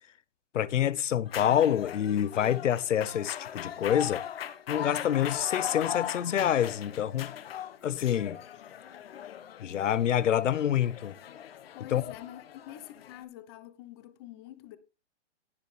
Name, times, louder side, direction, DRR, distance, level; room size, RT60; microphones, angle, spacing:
voice 1, 0.5-4.2 4.7-7.3 7.8-8.4 9.6-11.1 11.9-12.0, left 10 dB, 85° left, 1.0 m, -27 dB
sound 1, 1.3-13.2, left 10 dB, 55° left, 1.4 m, -39 dB
voice 2, 11.7-14.8, left 13 dB, 20° left, 0.9 m, -46 dB
18.0 x 7.0 x 3.4 m
hypercardioid pair, 170°, 36 cm